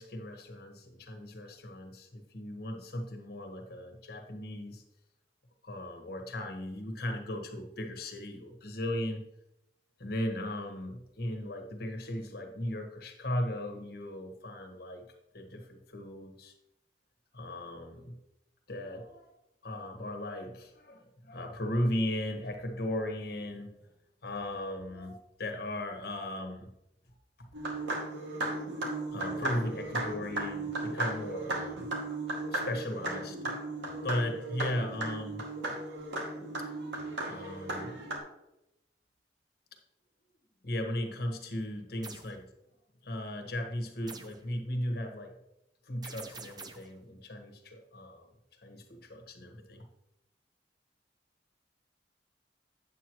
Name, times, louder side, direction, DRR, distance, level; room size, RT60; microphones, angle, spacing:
voice 1, 0.0-4.8 5.6-9.2 10.0-15.0 15.3-16.5 17.3-18.2 18.7-19.3 19.6-23.7 24.2-26.7 27.4-27.5 29.1-31.9 32.5-33.5 33.8-35.4 37.2-38.0 40.6-42.5 43.0-45.3 45.8-48.3 48.6-49.9, left 1 dB, 60° left, 4 dB, 1.4 m, -37 dB
sound 1, 27.5-38.2, right 2 dB, 85° right, 2.2 m, -36 dB
sound 2, 42.0-42.3 44.1-44.4 46.0-46.9, right 4 dB, 25° right, 0.7 m, -46 dB
9.3 x 8.2 x 3.1 m, 0.87 s
head